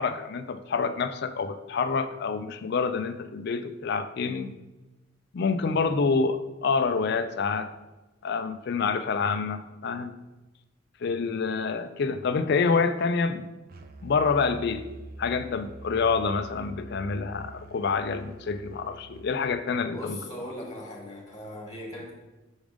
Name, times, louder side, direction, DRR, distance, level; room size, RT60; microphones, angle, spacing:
voice 1, 0.0-4.5 5.3-7.7 8.2-10.1 11.0-13.5 14.0-14.8 15.2-20.2, left 5 dB, 55° left, 10 dB, 0.4 m, -27 dB
Musical instrument, 13.7-19.4, right 2 dB, 50° right, 0.4 m, -45 dB
voice 2, 19.9-22.1, left 1 dB, 20° left, -1 dB, 1.2 m, -39 dB
6.2 x 3.4 x 5.0 m, 1.1 s
head